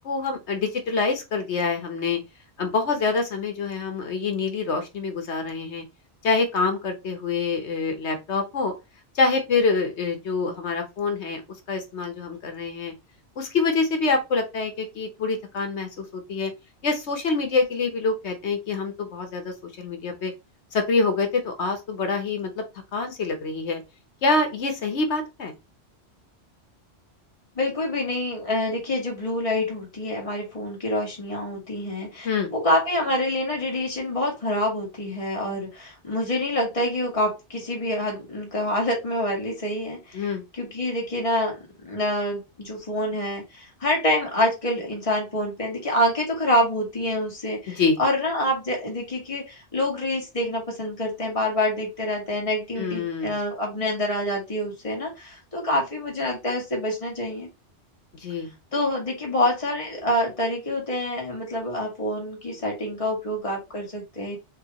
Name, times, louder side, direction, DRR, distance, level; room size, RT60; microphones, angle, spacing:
voice 1, 0.0-2.2 2.6-5.8 6.2-8.7 9.1-11.4 11.7-12.9 13.4-16.5 16.8-20.3 20.7-22.6 22.9-23.8 24.2-25.5 32.2-32.5 40.1-40.4 47.7-48.0 52.8-53.4 58.2-58.5, left 4 dB, 70° left, 5 dB, 1.2 m, -26 dB
voice 2, 27.6-40.3 40.5-41.6 41.8-57.5 58.7-64.4, left 1 dB, 30° left, -2 dB, 1.9 m, -26 dB
6.5 x 2.7 x 2.9 m, 0.25 s
omnidirectional pair, 1.2 m